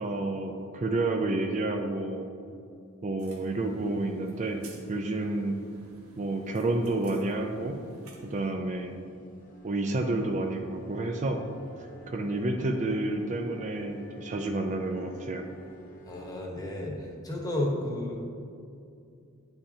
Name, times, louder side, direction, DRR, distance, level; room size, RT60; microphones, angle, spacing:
voice 1, 0.0-2.2 3.0-4.6 4.9-5.6 6.2-7.8 8.2-8.9 9.6-11.4 12.1-15.4, right 2 dB, 35° right, 4 dB, 0.4 m, -30 dB
sound 1, 3.2-8.5, right 2 dB, 80° right, 1.2 m, -51 dB
sound 2, 8.1-16.4, equal, 40° left, 1.0 m, -49 dB
voice 2, 16.1-18.2, left 1 dB, 20° left, -1 dB, 1.1 m, -32 dB
9.9 x 5.6 x 2.7 m, 2.5 s
head